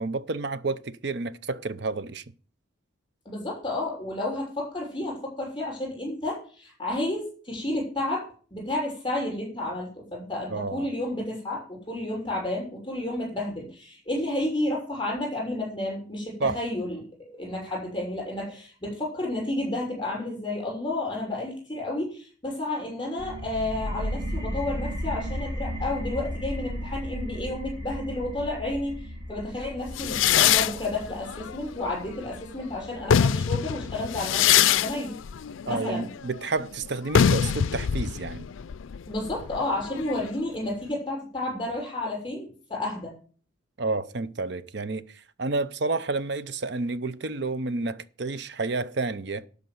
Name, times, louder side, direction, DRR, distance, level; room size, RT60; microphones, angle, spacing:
voice 1, 0.0-2.2 10.5-10.9 16.4-16.6 35.7-38.5 43.8-49.5, right 3 dB, 55° right, 0.7 m, -30 dB
voice 2, 3.2-29.0 29.3-35.2 35.7-36.1 39.1-43.2, left 1 dB, 20° left, 6.1 m, -31 dB
sound 1, 23.2-34.6, equal, 20° right, 2.2 m, -35 dB
sound 2, 30.0-32.4 32.9-40.4, left 9 dB, 75° left, 0.4 m, -24 dB
12.5 x 5.2 x 7.9 m
head